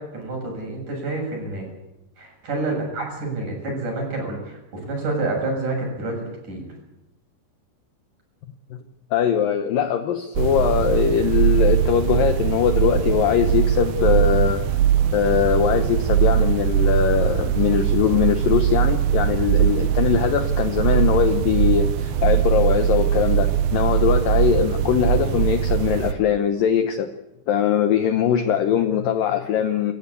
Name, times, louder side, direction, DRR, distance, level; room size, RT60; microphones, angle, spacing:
voice 1, 0.1-1.7 2.2-4.6 4.9-6.2 6.5-6.7, right 2 dB, 40° right, 1 dB, 8.2 m, -28 dB
voice 2, 9.1-14.7 15.1-27.1 27.5-29.9, left 9 dB, 85° left, 8 dB, 2.0 m, -21 dB
sound 1, 10.4-26.1, right 10 dB, 75° right, 2.1 m, -21 dB
26.5 x 15.5 x 8.4 m, 0.95 s
omnidirectional pair, 5.6 m